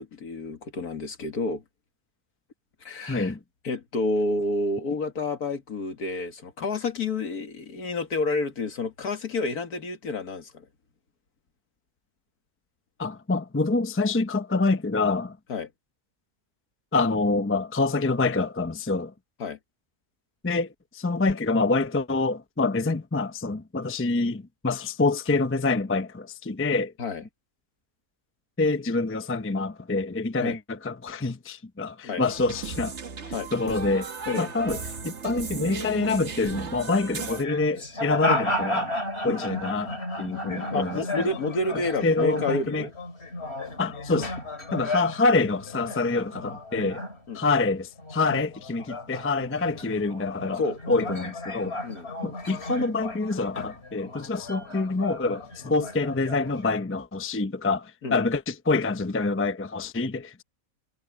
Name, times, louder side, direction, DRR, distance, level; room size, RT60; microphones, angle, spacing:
voice 1, 0.0-1.6 2.8-3.3 3.6-10.7 15.5-15.7 19.4-19.6 27.0-27.2 30.4-30.6 32.0-32.2 33.3-33.5 34.3-34.5 39.2-39.4 40.7-42.9 47.3-47.4 50.6-50.8 51.8-52.1 58.0-58.2, left 3 dB, 75° left, 2.4 m, -29 dB
voice 2, 3.1-3.4 13.0-15.4 16.9-19.1 20.4-26.9 28.6-33.0 33.5-34.1 34.4-38.9 39.2-41.3 42.0-42.9 43.8-44.3 44.7-47.0 47.3-50.6 50.9-51.8 52.2-60.4, left 3 dB, 15° left, 0.6 m, -26 dB
sound 1, 32.3-37.4, right 5 dB, 50° right, 1.6 m, -36 dB
sound 2, 37.2-47.7 48.0-56.7, left 1 dB, 45° left, 3.2 m, -34 dB
omnidirectional pair, 1.6 m